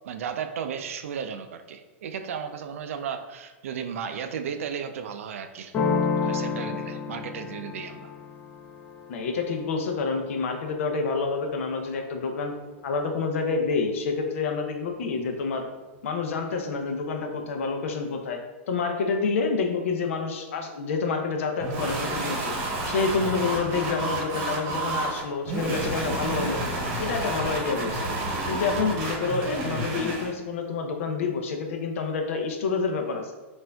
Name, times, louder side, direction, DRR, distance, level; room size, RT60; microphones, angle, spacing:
voice 1, 0.0-5.7 6.2-8.1, right 7 dB, 85° right, 8 dB, 0.4 m, -34 dB
sound 1, 5.7-11.3, left 5 dB, 25° left, 0.4 m, -31 dB
voice 2, 9.1-12.5 12.8-15.7 16.0-18.4 18.7-22.5 22.9-26.6 27.0-28.1 28.5-33.3, left 4 dB, 80° left, 4 dB, 0.6 m, -28 dB
sound 2, 21.6-30.3, right 2 dB, 40° right, 0.9 m, -30 dB
4.3 x 2.5 x 2.2 m, 1.2 s
supercardioid pair, 150°, 7 cm